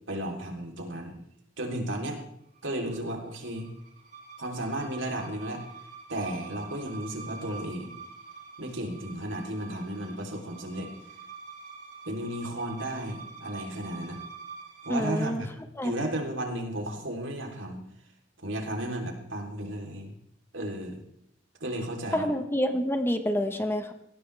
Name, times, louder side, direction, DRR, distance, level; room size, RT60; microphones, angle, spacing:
voice 1, 0.1-1.2 1.6-2.2 2.6-3.7 4.4-5.6 6.1-7.9 8.6-10.9 12.1-14.2 14.8-15.5 15.8-17.8 18.4-20.1 20.5-21.0 21.6-22.3, right 1 dB, 80° right, 2 dB, 3.5 m, -34 dB
sound 1, 2.5-15.2, right 5 dB, 45° right, 6.9 m, -46 dB
voice 2, 14.9-15.4 15.8-15.9 22.1-23.9, equal, 10° left, 7 dB, 1.2 m, -27 dB
20.5 x 16.5 x 3.4 m, 0.74 s
head